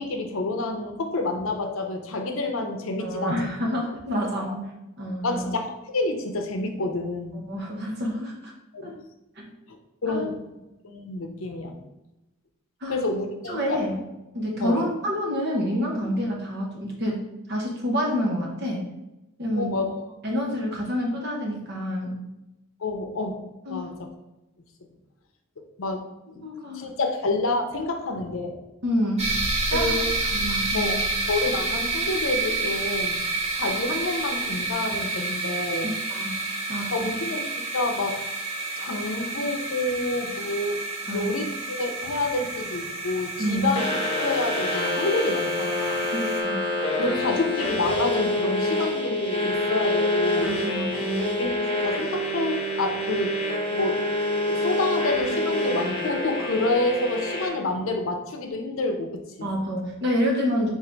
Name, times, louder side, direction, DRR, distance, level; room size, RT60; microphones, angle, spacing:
voice 1, 0.0-3.4 4.3-4.5 5.2-7.4 8.7-8.9 9.7-10.5 10.8-11.8 12.9-13.8 14.6-14.8 19.6-20.0 22.8-23.4 23.7-24.1 25.6-26.0 26.3-26.4 26.7-28.6 29.7-30.1 30.7-31.0 31.3-33.2 33.5-35.9 36.9-37.5 37.7-38.2 38.8-40.8 41.1-46.1 47.0-50.6 51.3-53.3 53.7-54.0 54.5-59.5, left 2 dB, 75° left, 4 dB, 0.6 m, -28 dB
voice 2, 3.0-4.7 5.0-5.4 7.3-8.5 8.8-8.9 9.4-9.5 10.1-10.2 12.8-13.0 13.5-14.0 14.3-17.2 17.5-18.8 19.4-19.8 20.2-22.2 23.7-23.9 26.4-26.8 28.8-29.3 29.7-30.0 30.3-31.0 35.8-36.4 36.7-37.1 41.1-41.3 43.4-43.7 46.1-46.6 50.4-51.3 59.4-60.7, equal, 50° right, -2 dB, 1.1 m, -28 dB
sound 1, 29.2-46.4, right 3 dB, 30° right, 0.8 m, -29 dB
sound 2, 43.7-57.5, left 1 dB, 30° left, 0.8 m, -26 dB
3.8 x 2.6 x 4.5 m, 0.94 s
head